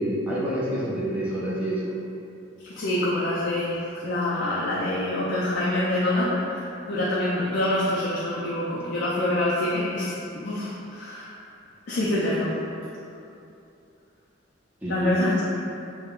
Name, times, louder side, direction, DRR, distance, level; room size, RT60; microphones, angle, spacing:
voice 1, 0.0-1.9 14.8-15.2, right 1 dB, 10° right, -9 dB, 0.5 m, -27 dB
voice 2, 2.7-11.3 11.9-12.6 14.9-15.4, left 1 dB, 50° left, -7 dB, 0.3 m, -26 dB
3.5 x 2.1 x 2.3 m, 2.7 s
head